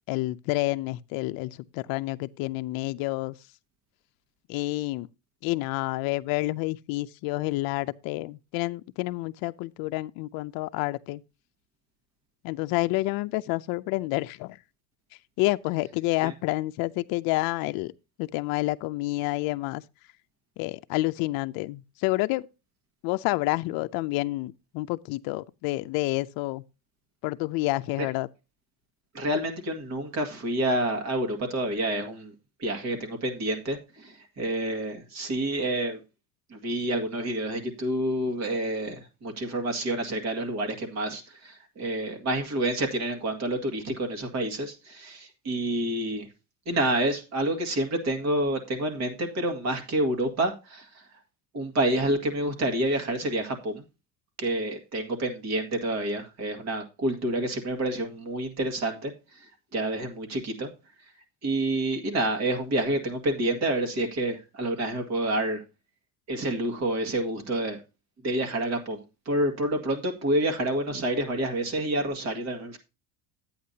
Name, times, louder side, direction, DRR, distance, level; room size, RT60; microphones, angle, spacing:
voice 1, 0.1-3.3 4.5-5.1 5.4-11.2 12.4-14.6 15.4-17.9 18.2-19.8 20.6-22.5 23.0-26.6 27.2-28.3, left 20 dB, 65° left, 0.5 m, -29 dB
voice 2, 29.1-32.3 32.6-36.0 36.5-46.3 46.7-51.0 51.5-53.8 54.4-59.1 59.7-60.7 61.4-65.6 66.3-67.8 68.2-72.8, right 1 dB, 45° right, 2.0 m, -28 dB
11.5 x 8.6 x 2.8 m
cardioid pair, 140°, 38 cm